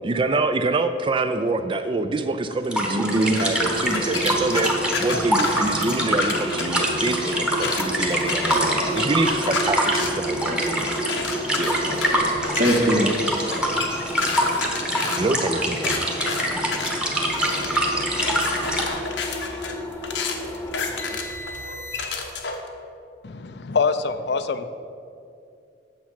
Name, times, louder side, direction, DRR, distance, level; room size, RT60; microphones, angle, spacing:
voice 1, 0.0-4.7 5.0-10.6 11.5-11.8 13.5-13.8 15.2-16.1, right 3 dB, 30° right, 9 dB, 0.3 m, -26 dB
sound 1, 2.6-18.9, equal, 5° right, 1.0 m, -25 dB
voice 2, 2.9-3.4 8.4-8.9 10.4-10.9 11.8-12.2 12.6-13.1 13.4-13.5, equal, 80° right, -1 dB, 1.9 m, -24 dB
sound 2, 3.3-22.3, right 1 dB, 10° left, 0.6 m, -32 dB
sound 3, 3.4-6.6 7.1-22.7, left 4 dB, 90° left, 1.0 m, -31 dB
voice 3, 23.2-24.7, left 4 dB, 65° left, 11 dB, 0.5 m, -24 dB
8.7 x 7.0 x 5.8 m, 2.5 s
head